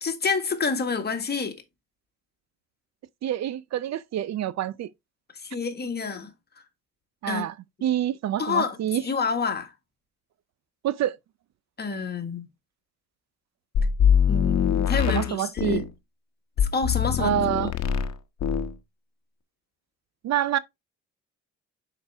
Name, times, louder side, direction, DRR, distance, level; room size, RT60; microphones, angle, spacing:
voice 1, 0.0-1.6 5.4-6.3 7.3-7.4 8.4-8.8 9.0-9.7 11.8-12.5 14.3-15.9 16.6-17.3, left 5 dB, 35° left, 1.7 m, -28 dB
voice 2, 3.2-4.9 7.2-7.5 7.8-9.0 10.8-11.2 15.1-15.8 17.2-17.7 20.2-20.6, right 11 dB, 60° right, 0.5 m, -27 dB
sound 1, 13.7-15.9 16.6-18.1 18.4-18.7, left 8 dB, 65° left, 1.1 m, -23 dB
6.5 x 5.3 x 3.4 m
cardioid pair, 90°, 30 cm